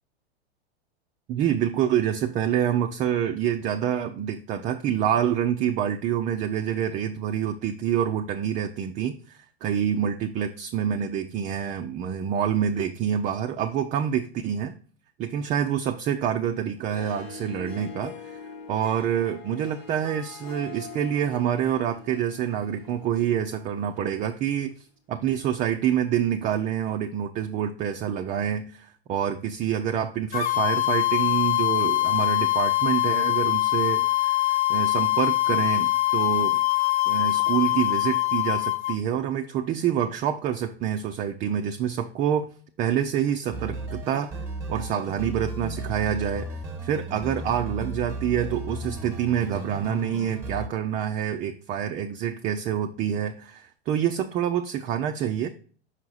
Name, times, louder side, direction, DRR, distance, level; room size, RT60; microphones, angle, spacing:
voice 1, 1.3-14.8 15.2-18.4 18.7-36.6 37.1-42.5 42.8-44.4 44.7-55.5, right 9 dB, 25° right, 5 dB, 0.4 m, -27 dB
Harp, 16.8-24.2, left 5 dB, 65° left, 1.4 m, -43 dB
sound 1, 30.3-39.0, left 16 dB, 25° left, 0.8 m, -23 dB
sound 2, 43.5-50.7, right 2 dB, 10° right, 1.3 m, -35 dB
5.7 x 4.6 x 3.9 m, 0.43 s
hypercardioid pair, 100°, 32 cm